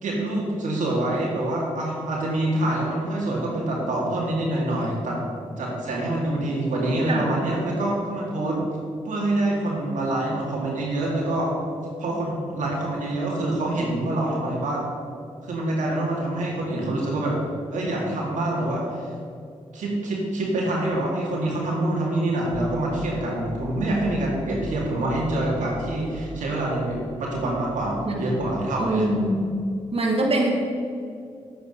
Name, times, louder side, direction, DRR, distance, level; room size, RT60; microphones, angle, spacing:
voice 1, 0.0-5.2 5.6-8.6 9.0-11.5 12.0-14.9 15.4-17.4 17.7-19.1 19.7-29.1, right 1 dB, 85° right, -3 dB, 2.2 m, -26 dB
sound 1, 22.5-28.6, left 1 dB, 20° left, 1.7 m, -40 dB
voice 2, 28.8-29.4 29.9-30.5, right 1 dB, 50° right, -2 dB, 2.1 m, -24 dB
8.7 x 8.4 x 5.4 m, 2.4 s
cardioid pair, 50°, 13 cm